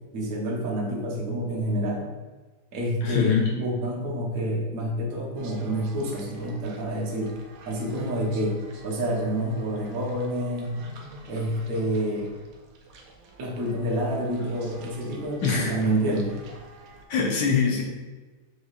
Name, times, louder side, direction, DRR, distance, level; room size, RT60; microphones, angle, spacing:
voice 1, 0.1-2.1 2.7-7.4 7.6-8.6 8.8-10.8 11.3-12.3 13.4-16.4, right 1 dB, 55° right, -2 dB, 1.1 m, -28 dB
voice 2, 3.0-3.5 15.4-15.8 17.1-17.8, left 5 dB, 70° left, 0 dB, 1.1 m, -23 dB
sound 1, 5.4-17.1, right 2 dB, 80° right, 1.5 m, -47 dB
6.4 x 3.0 x 2.4 m, 1.3 s
omnidirectional pair, 2.3 m